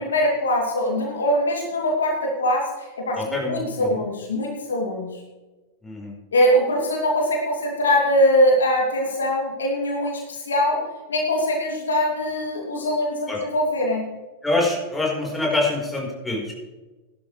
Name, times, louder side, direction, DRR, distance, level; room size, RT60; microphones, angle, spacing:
voice 1, 0.0-5.2 6.3-10.8 11.1-14.0, equal, 70° left, -1 dB, 2.7 m, -22 dB
voice 2, 3.2-3.9 5.8-6.1 13.3-13.4 14.4-16.5, left 2 dB, 5° left, -3 dB, 4.4 m, -25 dB
16.5 x 12.0 x 3.3 m, 1.2 s
figure-of-eight pair, 90°, 0 cm